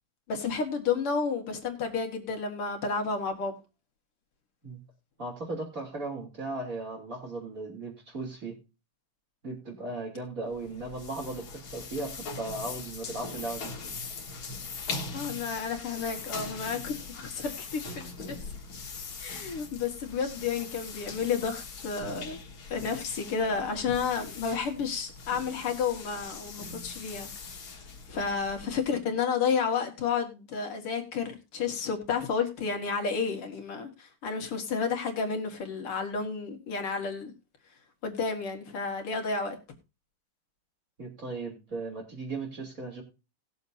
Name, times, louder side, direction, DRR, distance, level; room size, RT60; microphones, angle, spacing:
voice 1, 0.3-3.5 15.1-18.4 19.2-22.4 22.7-27.3 27.6-27.7 28.1-37.3 38.0-39.6, left 5 dB, 85° left, 2.9 m, -31 dB
voice 2, 5.2-8.6 9.4-13.9 41.0-43.0, right 2 dB, 40° right, 3.6 m, -37 dB
sound 1, 10.5-29.0, left 4 dB, 65° left, 2.5 m, -41 dB
19.5 x 7.2 x 2.7 m
omnidirectional pair, 2.4 m